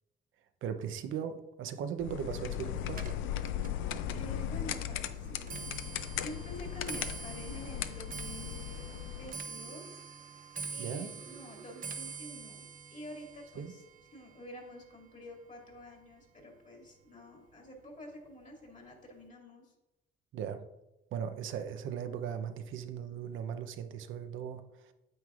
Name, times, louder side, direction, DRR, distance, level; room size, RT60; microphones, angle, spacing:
voice 1, 0.6-3.1 10.8-11.1 13.6-13.7 20.3-20.7 21.1-24.9, right 8 dB, 80° right, 8 dB, 0.7 m, -38 dB
sound 1, 2.0-9.3, left 10 dB, 85° left, 0.5 m, -37 dB
Clock, 2.9-16.2 16.6-17.0 17.8-17.9 18.3-18.6 18.9-19.0, right 5 dB, 45° right, 0.8 m, -46 dB
voice 2, 4.1-5.6 6.2-10.0 10.7-13.8 14.1-19.7, equal, 40° left, 0 dB, 2.3 m, -48 dB
9.3 x 7.5 x 2.5 m, 0.96 s
cardioid pair, 90°, 20 cm